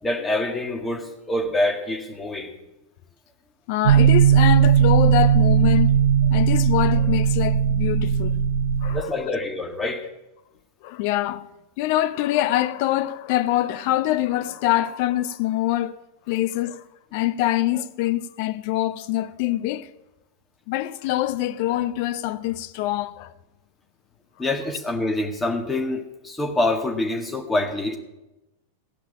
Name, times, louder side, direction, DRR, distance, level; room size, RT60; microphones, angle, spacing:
voice 1, 0.0-2.5 8.9-10.1 24.4-28.0, left 2 dB, 10° left, 1.9 m, -26 dB
voice 2, 3.7-5.9 6.3-8.4 8.8-9.4 10.8-11.5 11.8-16.8 17.1-19.9 20.7-23.3, left 14 dB, 45° left, 0.6 m, -24 dB
sound 1, 3.8-9.0, right 8 dB, 65° right, 0.4 m, -18 dB
16.5 x 5.8 x 8.7 m
figure-of-eight pair, 90°, 0 cm